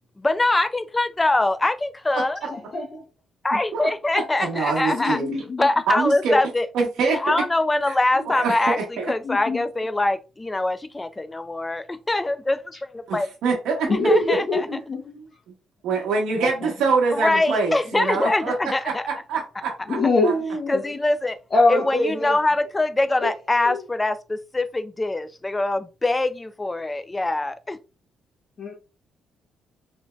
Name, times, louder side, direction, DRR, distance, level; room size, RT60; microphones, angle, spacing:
voice 1, 0.2-2.4 3.4-5.2 5.6-6.7 7.0-8.8 9.1-12.6 12.9-13.3 14.0-14.6 17.1-19.0 20.7-21.4 21.7-27.8, left 2 dB, 20° left, 0.3 m, -23 dB
voice 2, 2.5-3.0 4.7-5.7 8.1-8.3 9.2-9.7 13.8-15.3 16.4-16.7 19.9-20.8 21.5-22.3 23.2-23.3 23.6-23.8 28.6-28.7, left 2 dB, 40° left, 0.7 m, -24 dB
voice 3, 3.5-5.4 5.9-6.4 6.7-7.4 7.9-8.0 8.3-9.1 13.1-13.9 15.8-20.0 20.2-20.3, right 4 dB, 80° right, 0.8 m, -25 dB
3.0 x 2.6 x 2.2 m
cardioid pair, 90°, 0 cm